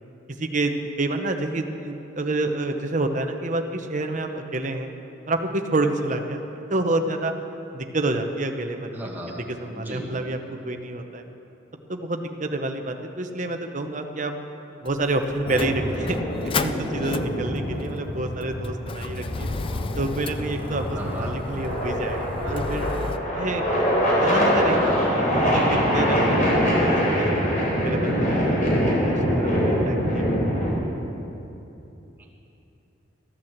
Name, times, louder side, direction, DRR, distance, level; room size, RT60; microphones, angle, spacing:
voice 1, 0.3-4.9 5.3-6.4 6.7-7.3 7.7-9.1 9.6-10.4 10.6-11.3 11.9-14.3 14.8-16.2 16.6-19.5 20.0-22.9 23.4-23.9 24.1-26.5 26.8-30.3, right 2 dB, 40° right, 5 dB, 0.9 m, -28 dB
voice 2, 8.9-9.4 9.7-10.1 20.9-21.4 32.2-32.3, right 1 dB, 10° right, -3 dB, 1.8 m, -36 dB
Motor vehicle (road), 14.9-23.2, left 4 dB, 25° left, 0.4 m, -33 dB
sound 1, 15.4-30.7, equal, 45° left, 3.7 m, -24 dB
14.0 x 9.4 x 7.3 m, 2.9 s
head